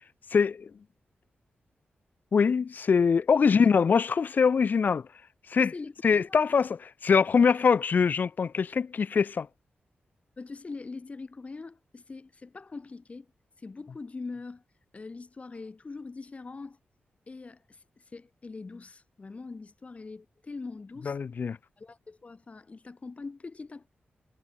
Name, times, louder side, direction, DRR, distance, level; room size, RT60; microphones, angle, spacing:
voice 1, 0.3-0.7 2.3-5.1 5.5-5.7 6.0-9.5 21.1-21.6, left 6 dB, 55° left, 0.5 m, -23 dB
voice 2, 5.6-6.4 10.4-13.3 13.6-14.6 14.9-16.8 17.3-21.2 21.8-23.9, left 3 dB, 40° left, 2.5 m, -42 dB
wide cardioid pair, 90°, 4 cm